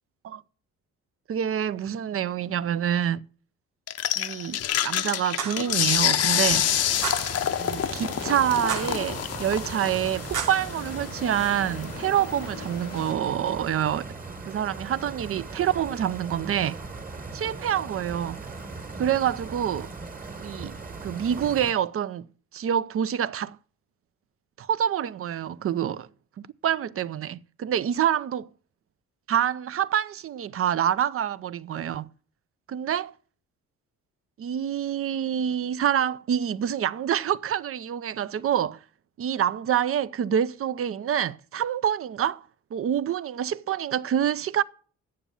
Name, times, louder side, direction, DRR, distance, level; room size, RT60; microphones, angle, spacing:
voice 1, 1.3-3.2 4.2-6.7 7.6-14.0 14.5-16.8 17.3-18.4 19.0-19.9 20.4-22.3 22.5-23.6 24.6-26.1 26.4-28.5 29.3-32.1 32.7-33.1 34.4-38.8 39.2-42.4 42.7-44.6, right 9 dB, 50° right, 0.6 m, -27 dB
sound 1, 3.9-13.1, left 10 dB, 55° left, 0.7 m, -28 dB
sound 2, 5.4-5.7 7.0-7.3 8.7-9.1 10.3-10.7, right 7 dB, 85° right, 1.3 m, -31 dB
Stream, 5.7-21.7, right 3 dB, 30° right, 1.5 m, -39 dB
8.8 x 7.2 x 6.9 m
cardioid pair, 90°, 30 cm